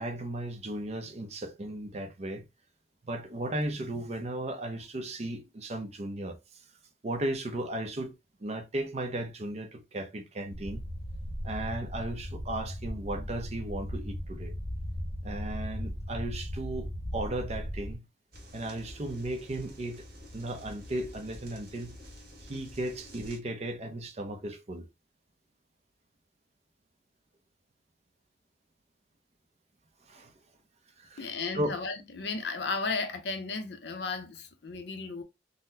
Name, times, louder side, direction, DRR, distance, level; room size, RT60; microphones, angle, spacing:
voice 1, 0.0-2.5 3.0-6.4 7.0-10.9 11.4-14.6 15.2-18.0 18.5-20.1 20.3-22.0 22.5-24.9 30.0-30.3 31.0-31.3 31.5-31.7, right 1 dB, 40° right, 0.6 m, -35 dB
sound 1, 10.5-18.0, equal, 35° left, 0.7 m, -37 dB
sound 2, 18.3-23.4, equal, 55° right, 1.3 m, -48 dB
voice 2, 31.2-35.2, left 4 dB, 65° left, 0.6 m, -34 dB
3.8 x 2.1 x 2.6 m
head